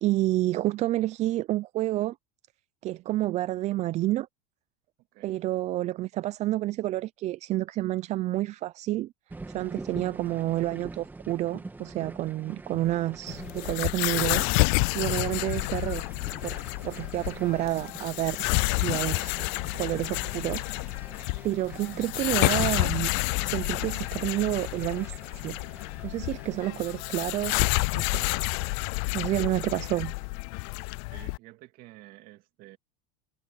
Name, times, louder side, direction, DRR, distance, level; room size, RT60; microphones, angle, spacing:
voice 1, 0.0-2.2 2.8-4.3 5.2-9.1 9.5-16.0 16.4-16.6 16.8-18.4 18.8-19.3 19.7-20.6 21.4-23.1 23.4-25.2 25.4-25.6 26.0-27.7 27.9-28.2 29.1-30.1, right 15 dB, 40° right, 0.5 m, -29 dB
voice 2, 5.1-5.4 23.6-24.0 29.5-29.6 31.1-32.8, right 18 dB, 55° right, 2.2 m, -51 dB
sound 1, 9.3-26.7, right 3 dB, 10° right, 2.4 m, -45 dB
sound 2, 13.3-31.4, left 30 dB, 60° left, 0.4 m, -29 dB
supercardioid pair, 120°, 18 cm